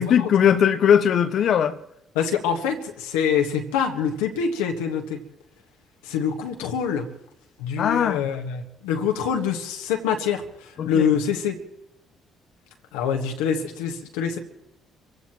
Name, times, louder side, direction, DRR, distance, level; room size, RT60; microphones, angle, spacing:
voice 1, 0.0-1.8 7.8-8.3 10.8-11.1, left 8 dB, 60° left, 0.8 m, -19 dB
voice 2, 2.1-5.2 6.0-7.1 7.6-11.6 12.9-14.4, left 7 dB, 80° left, 1.4 m, -25 dB
27.5 x 16.0 x 3.0 m
hypercardioid pair, 50°, 0 cm